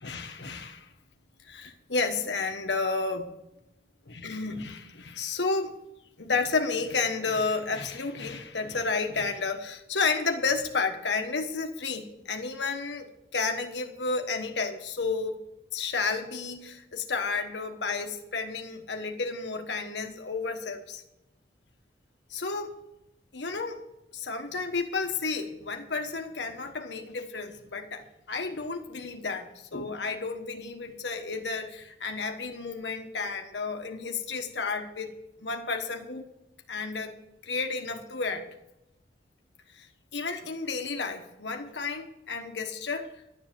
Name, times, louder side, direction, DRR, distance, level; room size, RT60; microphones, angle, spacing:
voice 1, 0.0-0.9 1.4-3.3 4.1-5.8 6.2-15.4 15.7-21.0 22.3-22.8 23.3-23.8 24.1-35.1 35.4-36.2 36.7-38.5 39.8-39.9 40.1-43.1, left 4 dB, 85° left, 5 dB, 1.3 m, -31 dB
11.5 x 7.5 x 7.5 m, 0.88 s
head